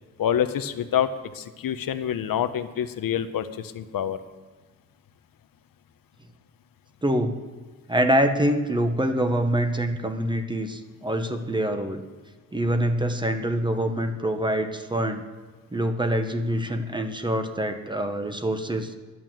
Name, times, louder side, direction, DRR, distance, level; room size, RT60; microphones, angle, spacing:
voice 1, 0.2-1.1 1.3-4.2, left 9 dB, 80° left, 11 dB, 0.8 m, -26 dB
voice 2, 7.0-7.4 7.9-12.0 12.5-15.2 15.7-18.9, right 1 dB, 15° right, 7 dB, 0.8 m, -25 dB
11.0 x 8.9 x 7.6 m, 1.4 s
wide cardioid pair, 170°, 34 cm